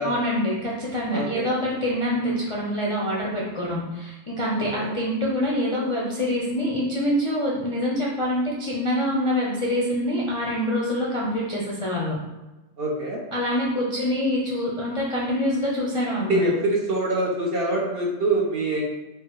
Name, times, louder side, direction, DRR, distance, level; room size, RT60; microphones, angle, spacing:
voice 1, 0.0-12.2 13.3-16.4, left 1 dB, 35° left, -5 dB, 0.5 m, -25 dB
voice 2, 1.1-1.5 4.5-4.9 12.8-13.2 16.3-18.8, right 2 dB, 50° right, -3 dB, 0.9 m, -25 dB
4.6 x 2.3 x 4.6 m, 1.1 s
omnidirectional pair, 1.5 m